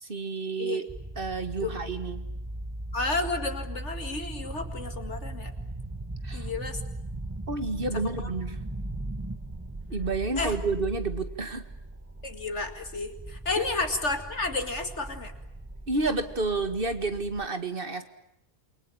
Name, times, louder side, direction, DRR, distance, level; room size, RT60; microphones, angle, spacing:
voice 1, 0.0-0.8 1.2-2.3 6.2-6.5 7.5-8.6 9.9-11.6 13.6-13.7 15.9-18.0, right 3 dB, 40° right, 9 dB, 2.1 m, -30 dB
sound 1, 0.9-17.5, right 1 dB, 15° right, 0.9 m, -38 dB
voice 2, 2.9-5.5 6.3-6.8 8.2-8.3 10.4-10.6 12.2-15.3, left 3 dB, 55° left, 6 dB, 2.5 m, -31 dB
28.5 x 23.5 x 8.7 m, 0.81 s
omnidirectional pair, 1.5 m